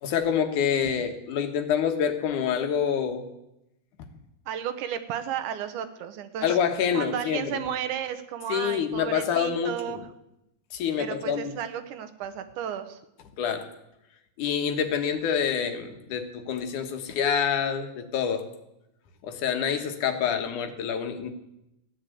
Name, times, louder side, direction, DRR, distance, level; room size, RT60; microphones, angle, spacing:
voice 1, 0.0-3.2 6.4-7.6 8.5-10.0 10.7-11.6 13.4-13.7 14.4-18.5 19.2-21.3, left 7 dB, 85° left, 6 dB, 2.9 m, -27 dB
voice 2, 4.5-6.6 6.9-10.0 11.0-13.0, right 9 dB, 85° right, 10 dB, 2.6 m, -33 dB
15.5 x 10.0 x 8.4 m, 0.87 s
omnidirectional pair, 3.4 m